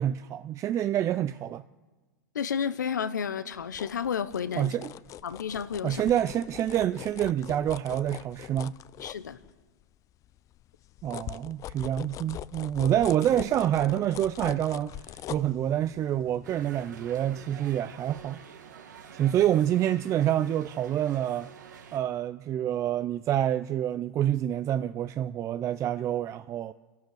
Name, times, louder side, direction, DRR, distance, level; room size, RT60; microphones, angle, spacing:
voice 1, 0.0-1.6 4.6-4.9 5.8-8.8 11.0-18.4 19.1-21.5 21.9-26.7, right 11 dB, 30° right, 0.6 m, -27 dB
voice 2, 2.3-4.8 5.2-6.1 9.0-9.4, left 7 dB, 90° left, 1.2 m, -31 dB
sound 1, 3.5-9.8 10.2-17.8 18.2-18.3, left 12 dB, 35° left, 0.6 m, -43 dB
sound 2, 16.4-22.0, right 7 dB, 85° right, 2.5 m, -48 dB
28.5 x 12.0 x 7.9 m
hypercardioid pair, 110°, 10 cm